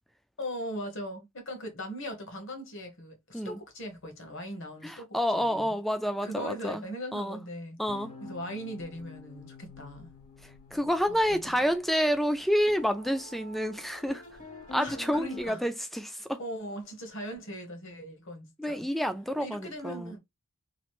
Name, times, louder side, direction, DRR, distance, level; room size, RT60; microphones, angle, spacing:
voice 1, 0.4-5.1 5.3-5.7 6.2-7.8 8.3-10.1 11.3-11.5 14.8-15.6 16.4-18.9 19.4-20.2, equal, 60° left, 1.1 m, -39 dB
voice 2, 4.8-6.8 7.1-7.4 7.8-8.1 10.4-14.2 14.7-16.4 18.6-20.2, equal, ahead, 0.3 m, -29 dB
sound 1, 7.9-15.5, left 3 dB, 85° left, 1.5 m, -46 dB
3.0 x 2.5 x 3.0 m
head